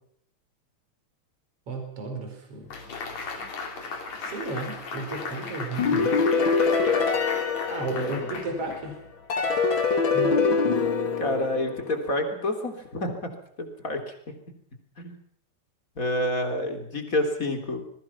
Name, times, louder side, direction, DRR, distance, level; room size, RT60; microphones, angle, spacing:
voice 1, 1.7-2.7 4.2-6.2 7.7-9.0 10.1-10.6, right 2 dB, 50° right, 4 dB, 5.4 m, -33 dB
sound 1, 2.7-9.2, left 4 dB, 65° left, 4.6 m, -36 dB
sound 2, 5.8-8.6 9.3-12.1, left 4 dB, 45° left, 2.8 m, -24 dB
voice 2, 7.9-8.3 11.2-13.2 13.6-14.1 15.0-15.2 16.0-17.9, left 1 dB, 25° left, 5 dB, 3.7 m, -28 dB
26.5 x 21.5 x 6.0 m, 0.65 s
omnidirectional pair, 3.4 m